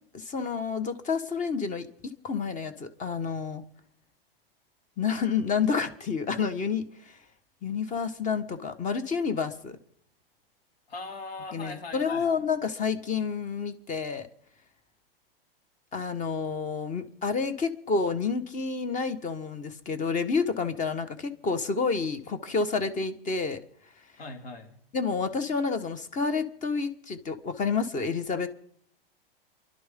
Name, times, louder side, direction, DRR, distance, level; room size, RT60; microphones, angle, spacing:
voice 1, 0.1-1.9 2.2-3.6 5.0-7.2 7.6-9.8 11.5-14.3 15.9-23.6 24.9-28.5, left 5 dB, 25° left, 11 dB, 1.5 m, -29 dB
voice 2, 10.9-12.3 24.2-24.8, left 3 dB, 80° left, 4 dB, 3.1 m, -40 dB
28.5 x 11.5 x 3.8 m, 0.66 s
hypercardioid pair, 110°, 30 cm